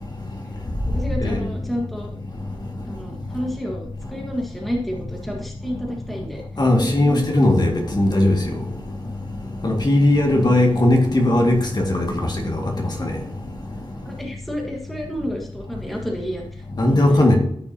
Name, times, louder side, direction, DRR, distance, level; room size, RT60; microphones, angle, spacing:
voice 1, 0.9-2.1 2.9-6.4 6.8-7.2 9.6-9.7 14.0-17.3, equal, ahead, 1.6 m, -30 dB
voice 2, 6.6-8.4 9.6-12.1 12.5-12.6 13.0-13.2 16.8-17.3, left 1 dB, 45° left, 1.9 m, -17 dB
14.0 x 5.8 x 2.8 m
wide cardioid pair, 110°, 10 cm